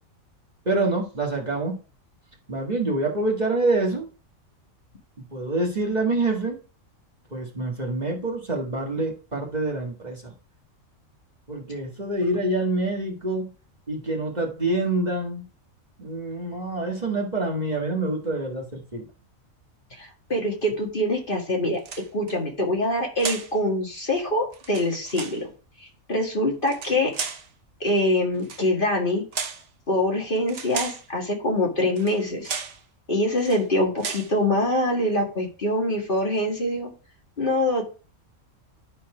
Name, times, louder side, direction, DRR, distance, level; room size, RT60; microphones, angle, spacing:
voice 1, 0.6-1.7 2.5-4.1 5.3-6.6 7.3-10.3 11.5-13.5 13.9-15.4 16.0-19.0, right 2 dB, 30° right, -1 dB, 1.6 m, -26 dB
voice 2, 20.0-21.8 22.1-25.5 25.8-27.1 27.8-29.2 29.9-32.5 33.1-36.9 37.4-37.9, left 1 dB, 40° left, 0 dB, 2.0 m, -24 dB
sound 1, 21.8-22.4 23.2-23.6 24.5-25.4 26.6-27.5 28.4-28.7 29.3-29.7 30.5-31.1 32.0-32.2 32.4-32.8 33.4-33.7 34.0-34.3, right 6 dB, 65° right, 1.2 m, -34 dB
10.5 x 4.3 x 4.8 m, 0.37 s
omnidirectional pair, 1.4 m